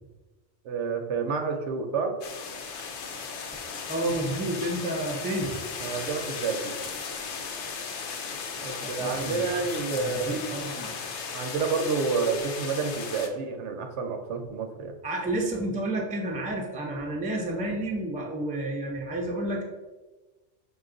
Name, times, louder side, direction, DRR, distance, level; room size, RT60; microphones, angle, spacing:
voice 1, 0.6-2.2 5.8-6.8 8.6-10.4 11.3-14.9, right 4 dB, 75° right, 5 dB, 0.8 m, -29 dB
sound 1, 2.2-13.3, left 5 dB, 70° left, 0.8 m, -36 dB
voice 2, 3.9-5.5 8.8-9.6 9.9-10.9 15.0-19.6, right 1 dB, 10° right, -1 dB, 0.4 m, -30 dB
5.5 x 2.3 x 3.8 m, 1.2 s
omnidirectional pair, 1.2 m